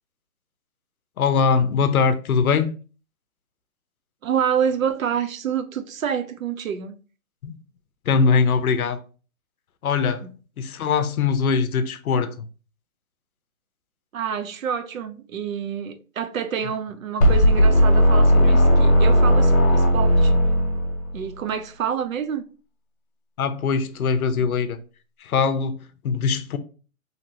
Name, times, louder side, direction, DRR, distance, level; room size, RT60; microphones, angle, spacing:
voice 1, 1.2-2.7 7.4-7.6 8.1-9.0 9.8-10.2 10.6-12.4 23.4-24.8 25.2-25.8 26.0-26.6, left 5 dB, 85° left, 0.6 m, -21 dB
voice 2, 4.2-7.0 14.1-20.4 21.1-22.4, right 7 dB, 70° right, 0.5 m, -27 dB
sound 1, 17.2-21.2, equal, 50° left, 1.0 m, -16 dB
2.9 x 2.6 x 2.8 m
hypercardioid pair, 180°, 42 cm